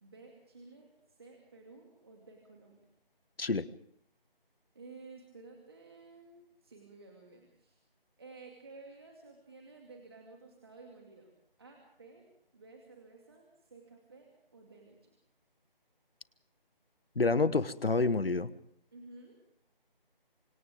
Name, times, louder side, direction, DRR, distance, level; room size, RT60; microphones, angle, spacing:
voice 1, 0.0-2.8 4.7-7.8 8.2-11.3 11.6-12.2 12.5-15.0 18.9-19.3, right 3 dB, 25° right, 1 dB, 2.3 m, -53 dB
voice 2, 17.1-18.5, left 3 dB, 80° left, 15 dB, 1.3 m, -28 dB
29.0 x 25.5 x 3.6 m, 0.66 s
figure-of-eight pair, 175°, 29 cm